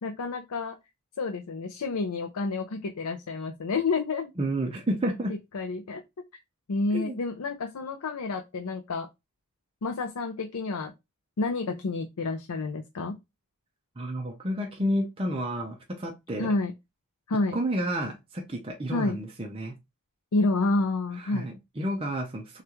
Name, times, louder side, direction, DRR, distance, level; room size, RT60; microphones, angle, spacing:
voice 1, 0.0-0.8 1.2-4.3 5.3-6.3 6.7-9.1 9.8-10.9 11.4-13.2 16.4-16.7 17.3-17.6 18.9-19.2 20.3-21.5, left 3 dB, 85° left, 0.6 m, -29 dB
voice 2, 4.4-5.3 6.9-7.2 14.0-16.5 17.5-19.7 21.2-22.6, right 1 dB, 25° right, 0.6 m, -30 dB
6.5 x 2.4 x 2.9 m
head